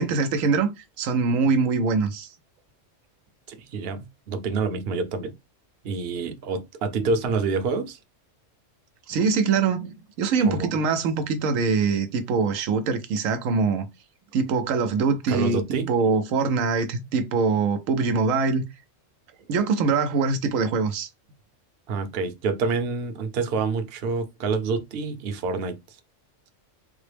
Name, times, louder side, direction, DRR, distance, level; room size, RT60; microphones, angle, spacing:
voice 1, 0.0-2.3 9.1-13.9 14.3-15.6 15.9-18.6 19.5-21.1, right 4 dB, 90° right, 1.0 m, -23 dB
voice 2, 3.5-5.3 5.8-8.0 10.4-10.7 15.3-15.9 21.9-25.8, right 4 dB, 55° right, 0.8 m, -27 dB
3.8 x 2.0 x 3.3 m
omnidirectional pair, 1.3 m